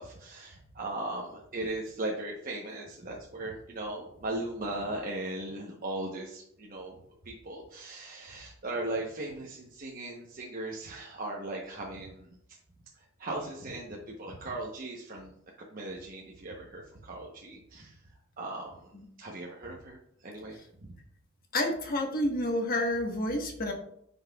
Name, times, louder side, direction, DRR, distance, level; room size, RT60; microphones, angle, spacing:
voice 1, 0.0-12.3 13.0-15.3 15.7-18.0 18.4-18.9 19.2-20.6, right 2 dB, 45° right, -2 dB, 0.9 m, -38 dB
voice 2, 21.5-23.7, left 1 dB, 45° left, 2 dB, 1.3 m, -29 dB
9.6 x 5.5 x 2.3 m, 0.72 s
head